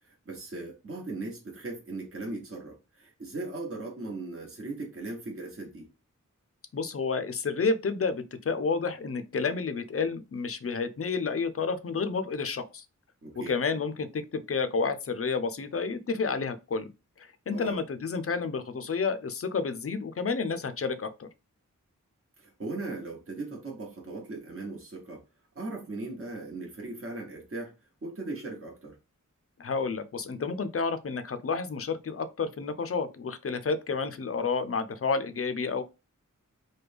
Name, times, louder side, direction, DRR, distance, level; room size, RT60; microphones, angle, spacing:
voice 1, 0.0-5.9 13.2-13.6 17.5-17.8 22.4-25.2 25.5-27.7 28.0-29.0, right 2 dB, 45° right, 1.1 m, -38 dB
voice 2, 6.7-12.8 13.5-16.9 17.2-21.3 29.6-35.8, left 4 dB, 45° left, 0.5 m, -30 dB
3.3 x 2.2 x 3.3 m
wide cardioid pair, 60°, 31 cm